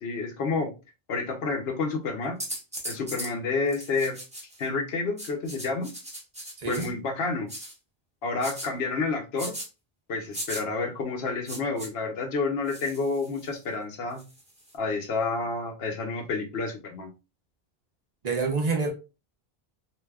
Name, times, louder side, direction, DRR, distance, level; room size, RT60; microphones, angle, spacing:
voice 1, 0.0-0.7 1.1-2.4 2.8-4.2 4.6-5.9 6.7-7.5 8.2-9.5 10.1-14.2 14.8-17.1, left 4 dB, 80° left, 1.0 m, -29 dB
sound 1, 2.4-3.3 3.7-4.6 5.2-6.9 7.5-7.7 8.4-8.7 9.4-9.7 10.3-10.6 11.5-11.9 12.7-13.6 14.2-14.7, right 1 dB, 5° right, 0.9 m, -38 dB
voice 2, 6.6-6.9 18.2-18.9, right 4 dB, 45° right, 0.8 m, -27 dB
3.3 x 2.7 x 2.2 m
omnidirectional pair, 1.0 m